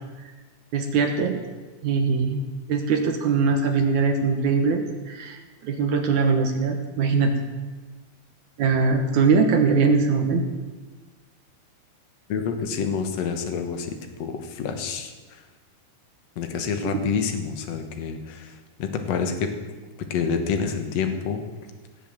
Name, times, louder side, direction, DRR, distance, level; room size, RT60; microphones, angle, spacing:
voice 1, 0.7-1.4 1.8-7.3 8.6-10.5 16.8-16.9, right 4 dB, 65° right, 5 dB, 2.2 m, -22 dB
voice 2, 12.3-15.4 16.4-19.5 20.1-21.4, left 6 dB, 60° left, 6 dB, 1.9 m, -28 dB
18.0 x 7.8 x 7.7 m, 1.3 s
omnidirectional pair, 4.4 m